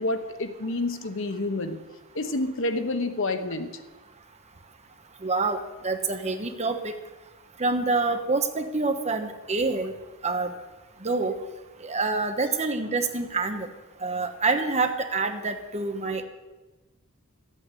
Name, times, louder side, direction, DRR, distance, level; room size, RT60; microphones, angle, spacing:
voice 1, 0.0-1.8 2.1-3.8, left 2 dB, 60° left, 8 dB, 1.1 m, -28 dB
voice 2, 5.2-5.6 5.8-7.0 7.6-9.9 10.2-10.5 11.0-11.3 11.8-13.7 14.0-16.2, right 3 dB, 30° right, 6 dB, 1.2 m, -26 dB
13.0 x 8.7 x 8.2 m, 1.1 s
head